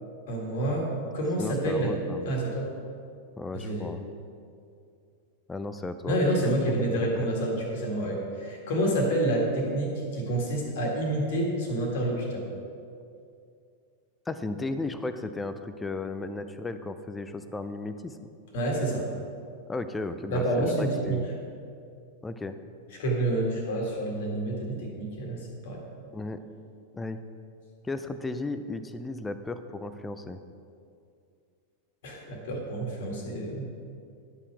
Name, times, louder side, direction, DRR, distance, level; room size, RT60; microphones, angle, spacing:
voice 1, 0.3-0.9 1.1-1.9 2.3-2.7 3.5-3.9 6.1-12.5 18.5-19.1 20.3-21.2 23.0-25.8 32.0-33.6, right 1 dB, 55° left, -1 dB, 1.8 m, -28 dB
voice 2, 1.4-2.3 3.4-4.0 5.5-6.5 6.8-7.1 14.3-18.2 19.7-21.3 22.2-22.6 26.1-26.4 26.9-27.2 27.8-30.4, left 2 dB, 10° left, 10 dB, 0.5 m, -35 dB
11.0 x 5.7 x 4.6 m, 2.4 s
figure-of-eight pair, 90°, 0 cm